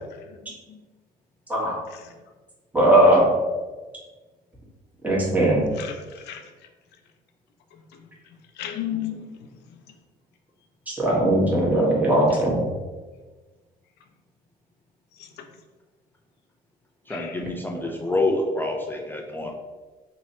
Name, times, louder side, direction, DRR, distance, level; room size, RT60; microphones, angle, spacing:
voice 1, 2.7-3.3 5.0-5.7 10.9-12.6, right 1 dB, 10° right, -5 dB, 1.3 m, -19 dB
voice 2, 5.7-6.4 8.6-9.2 12.3-12.4 15.2-15.3 17.1-17.4, left 11 dB, 80° left, 6 dB, 0.5 m, -34 dB
voice 3, 17.1-19.5, left 2 dB, 10° left, 1 dB, 0.4 m, -27 dB
3.0 x 2.7 x 4.2 m, 1.3 s
cardioid pair, 110°, 17 cm